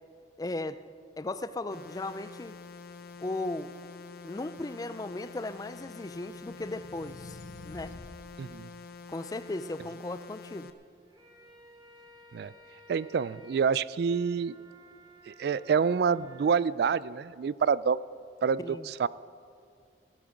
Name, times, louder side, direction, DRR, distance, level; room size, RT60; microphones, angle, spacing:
voice 1, 0.4-0.8 1.2-2.6 3.2-3.7 4.2-7.4 7.6-8.0 9.1-10.7 18.6-18.9, left 2 dB, 20° left, 14 dB, 0.4 m, -36 dB
sound 1, 1.7-10.7, left 4 dB, 55° left, 0.8 m, -47 dB
sound 2, 5.3-8.2, left 2 dB, 75° left, 1.1 m, -49 dB
voice 2, 8.4-8.7 12.3-12.5 12.9-14.6 15.3-18.0 18.4-19.1, right 6 dB, 60° right, 19 dB, 0.3 m, -27 dB
sound 3, 10.9-16.5, right 1 dB, 20° right, 1.6 m, -55 dB
16.0 x 13.0 x 5.1 m, 2.2 s
head